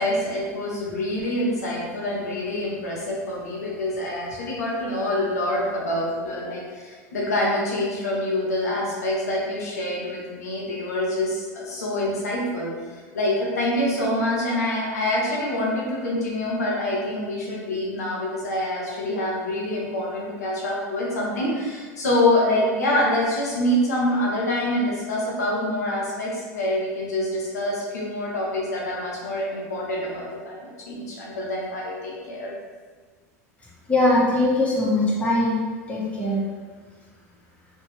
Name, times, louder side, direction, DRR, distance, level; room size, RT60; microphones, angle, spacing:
voice 1, 0.0-12.7 13.1-32.5, left 1 dB, 90° left, -4 dB, 0.9 m, -26 dB
voice 2, 33.9-35.5 35.9-36.4, left 1 dB, 15° left, -7 dB, 1.3 m, -21 dB
3.3 x 2.9 x 3.2 m, 1.5 s
hypercardioid pair, 100°, 8 cm